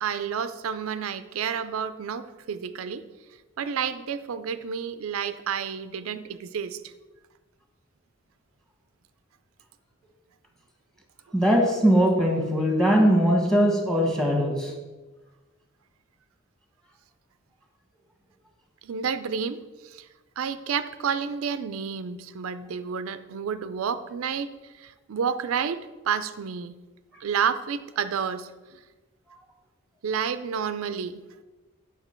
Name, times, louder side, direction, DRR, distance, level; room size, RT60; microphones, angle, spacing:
voice 1, 0.0-3.0 3.6-6.9 18.8-20.1 20.4-26.8 27.2-28.8 30.0-31.2, right 7 dB, 80° right, 12 dB, 0.4 m, -30 dB
voice 2, 11.3-14.7, equal, 5° left, 1 dB, 1.4 m, -21 dB
8.1 x 5.9 x 4.4 m, 1.2 s
head